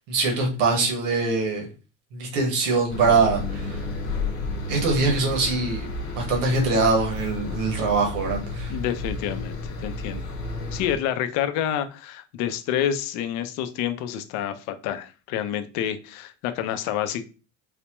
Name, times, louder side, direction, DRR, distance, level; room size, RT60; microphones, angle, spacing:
voice 1, 0.1-1.7 2.1-3.8 4.7-5.9 6.1-8.7, right 3 dB, 75° right, 1 dB, 1.3 m, -23 dB
sound 1, 2.9-11.0, left 2 dB, 35° left, 1.1 m, -32 dB
voice 2, 8.7-10.3 10.7-17.3, left 10 dB, 55° left, 10 dB, 0.5 m, -28 dB
4.1 x 2.2 x 2.9 m, 0.33 s
cardioid pair, 165°, 34 cm